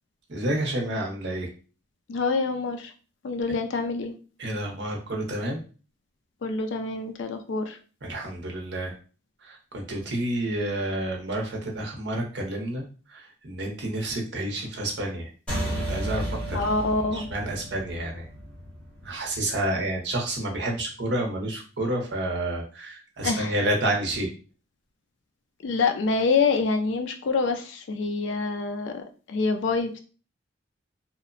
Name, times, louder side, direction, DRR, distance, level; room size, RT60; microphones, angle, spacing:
voice 1, 0.3-1.5 4.4-5.6 8.0-9.0 9.4-15.3 15.9-16.8 17.1-18.3 19.0-24.3, right 1 dB, 60° right, 1 dB, 0.7 m, -29 dB
voice 2, 2.1-2.9 3.2-4.1 6.4-7.8 16.5-17.3 23.2-23.5 25.6-30.0, left 4 dB, 70° left, 5 dB, 0.4 m, -26 dB
sound 1, 15.5-20.3, equal, 5° left, 1.0 m, -33 dB
2.9 x 2.0 x 2.4 m, 0.36 s
head